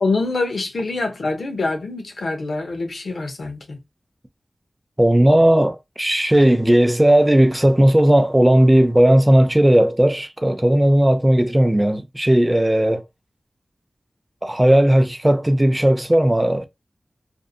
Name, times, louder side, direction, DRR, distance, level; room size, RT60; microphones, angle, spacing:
voice 1, 0.0-3.8, left 3 dB, 90° left, 0.7 m, -25 dB
voice 2, 5.0-13.0 14.4-16.6, right 1 dB, 20° right, 0.5 m, -16 dB
2.6 x 2.0 x 2.6 m
cardioid pair, 45°, 0 cm